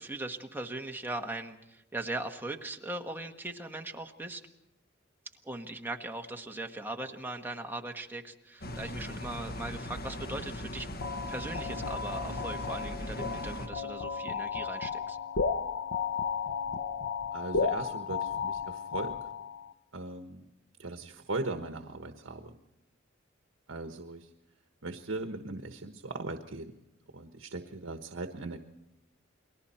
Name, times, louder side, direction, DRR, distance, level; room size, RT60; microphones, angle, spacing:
voice 1, 0.0-4.4 5.4-10.9 11.3-15.2, right 2 dB, 10° right, 3 dB, 1.4 m, -39 dB
sound 1, 8.6-13.7, left 1 dB, 50° left, 1.5 m, -39 dB
sound 2, 11.0-19.7, left 5 dB, 70° left, 0.8 m, -34 dB
voice 2, 17.3-19.2 19.9-20.4 20.8-22.5 23.7-24.3 24.8-26.7 27.1-28.6, right 2 dB, 70° right, 6 dB, 1.3 m, -38 dB
30.0 x 22.0 x 4.4 m, 0.86 s
head